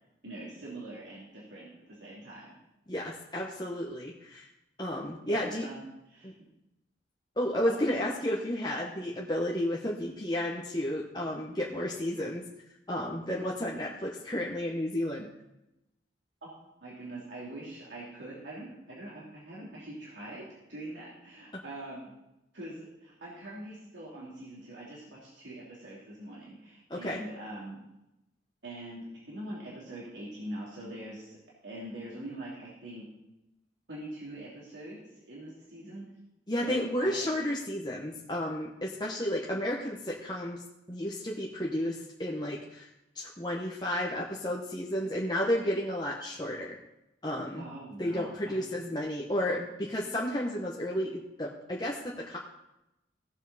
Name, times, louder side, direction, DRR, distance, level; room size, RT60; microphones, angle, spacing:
voice 1, 0.2-2.6 5.3-5.8 6.1-6.3 7.6-7.8 16.8-22.1 22.5-27.8 28.6-31.4 31.6-33.1 33.9-36.0 36.6-37.3 47.6-48.6, right 1 dB, 85° right, -6 dB, 2.9 m, -43 dB
voice 2, 2.9-4.5 4.8-5.7 6.2-6.3 7.4-12.5 12.9-15.3 26.9-27.2 36.5-40.6 40.9-42.9 43.1-46.8 47.2-47.7 48.0-52.4, left 1 dB, 25° left, -3 dB, 1.1 m, -32 dB
16.5 x 7.2 x 4.1 m, 0.90 s
head